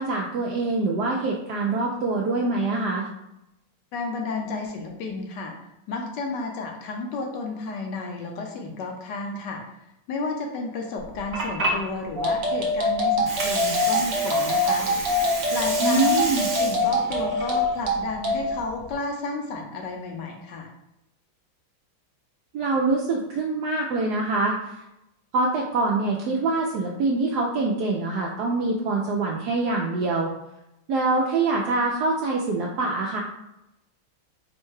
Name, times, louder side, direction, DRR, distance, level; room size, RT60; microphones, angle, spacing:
voice 1, 0.0-3.1 15.8-16.5 22.5-24.8 25.3-30.3 30.9-33.2, right 3 dB, 90° right, -1 dB, 0.8 m, -24 dB
voice 2, 3.9-5.5 5.9-9.6 10.1-14.9 15.5-16.3 16.6-20.7, left 3 dB, 70° left, 2 dB, 1.2 m, -32 dB
Water, 11.0-18.9, right 2 dB, 50° right, 1.3 m, -32 dB
sound 1, 12.2-18.4, left 1 dB, 65° right, 1.5 m, -24 dB
4.6 x 2.2 x 4.6 m, 0.88 s
omnidirectional pair, 2.3 m